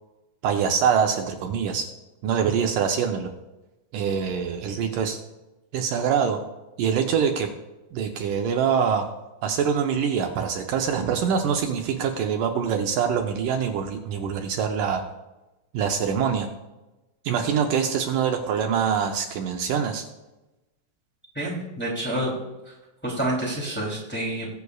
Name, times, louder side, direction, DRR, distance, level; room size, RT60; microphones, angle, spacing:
voice 1, 0.4-1.9 2.2-3.3 3.9-5.2 5.7-6.4 6.8-7.5 7.9-9.1 9.4-15.0 15.7-16.5 17.3-20.0, right 7 dB, 75° right, 4 dB, 2.2 m, -24 dB
voice 2, 21.3-22.3 22.7-22.8 23.0-24.6, right 1 dB, 5° left, -5 dB, 2.3 m, -28 dB
20.5 x 8.2 x 2.4 m, 1.0 s
omnidirectional pair, 4.0 m